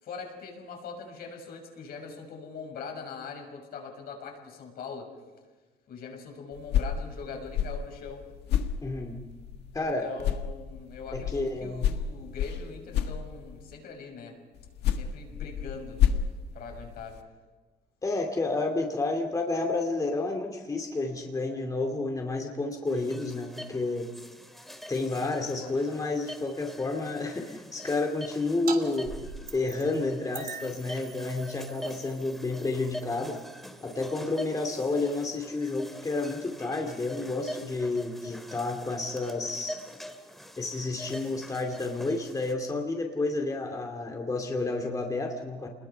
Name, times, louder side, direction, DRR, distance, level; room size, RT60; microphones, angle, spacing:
voice 1, 0.0-5.1 5.9-8.2 9.7-14.4 14.9-16.0 16.5-17.2 25.2-25.8, left 5 dB, 65° left, 2 dB, 6.3 m, -42 dB
sound 1, 6.5-9.9 10.2-13.7 14.6-17.2, left 9 dB, 80° left, 1.6 m, -30 dB
voice 2, 8.8-9.2 9.7-10.1 11.1-11.9 18.0-24.1 24.9-29.1 29.5-33.4 33.8-39.8 40.6-45.7, left 3 dB, 20° left, 2 dB, 2.4 m, -30 dB
sound 2, 22.9-42.5, equal, ahead, 2.2 m, -45 dB
sound 3, 28.7-28.8 29.0-30.0 30.3-35.4, right 6 dB, 60° right, 3.2 m, -44 dB
28.5 x 21.0 x 5.7 m, 1.3 s
cardioid pair, 110°, 17 cm